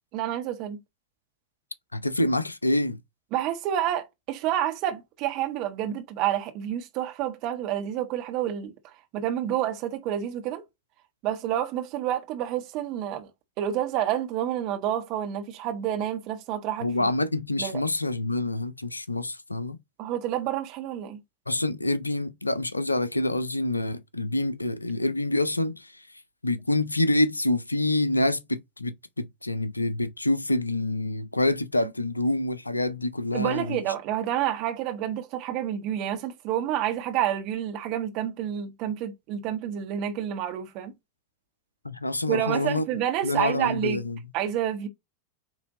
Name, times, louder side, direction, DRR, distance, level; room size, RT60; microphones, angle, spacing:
voice 1, 0.1-0.8 3.3-8.7 9.1-10.6 11.2-13.3 13.6-17.1 17.6-17.8 20.0-21.2 33.3-40.9 42.3-44.0 44.3-44.9, right 11 dB, 40° right, 1.5 m, -29 dB
voice 2, 1.9-3.0 16.8-19.8 21.5-26.1 26.4-33.8 41.8-42.9 43.2-44.2, left 1 dB, 85° left, 0.6 m, -27 dB
8.4 x 3.3 x 4.0 m
figure-of-eight pair, 90°, 0 cm